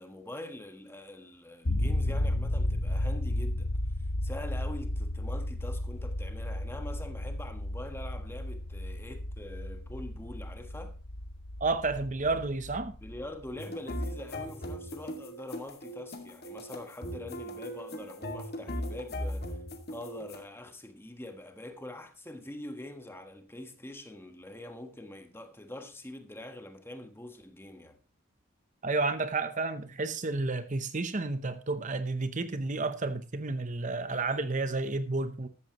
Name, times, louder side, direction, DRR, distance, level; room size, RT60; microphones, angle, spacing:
voice 1, 0.0-3.7 4.0-11.0 13.0-19.6 19.9-28.0, left 1 dB, 10° left, 1.4 m, -44 dB
sound 1, 1.7-13.6, left 1 dB, 80° left, 1.4 m, -33 dB
voice 2, 11.6-12.9 28.8-35.5, right 3 dB, 35° right, 0.8 m, -31 dB
sound 2, 13.6-20.4, equal, 50° left, 2.2 m, -38 dB
13.5 x 13.5 x 3.0 m
head